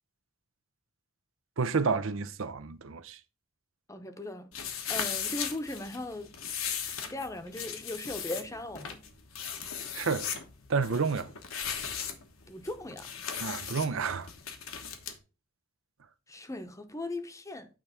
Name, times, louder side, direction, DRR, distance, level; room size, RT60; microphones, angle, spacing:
voice 1, 1.6-3.2 9.9-10.3 10.7-11.3 13.4-14.3, right 5 dB, 75° right, 0.6 m, -30 dB
voice 2, 3.9-6.3 7.1-9.0 12.5-13.1 16.3-17.7, left 2 dB, 15° left, 0.8 m, -38 dB
sound 1, 4.5-15.2, left 7 dB, 85° left, 1.3 m, -38 dB
9.1 x 3.3 x 5.8 m
head